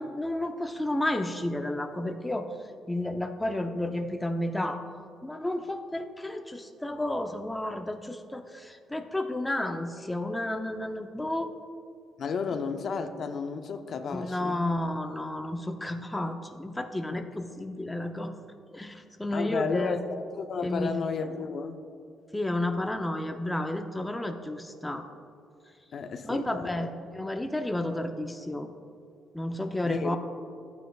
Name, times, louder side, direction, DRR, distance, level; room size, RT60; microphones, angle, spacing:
voice 1, 0.0-2.5 2.9-4.8 5.2-11.5 14.1-18.3 18.7-20.0 20.6-21.0 22.3-25.0 26.2-28.7 29.3-30.2, left 1 dB, 10° left, 0.6 m, -31 dB
voice 2, 12.2-14.6 17.1-17.2 19.3-21.8 25.9-26.9 29.8-30.2, left 5 dB, 60° left, 0.6 m, -33 dB
14.5 x 9.2 x 2.4 m
cardioid pair, 90°, 0 cm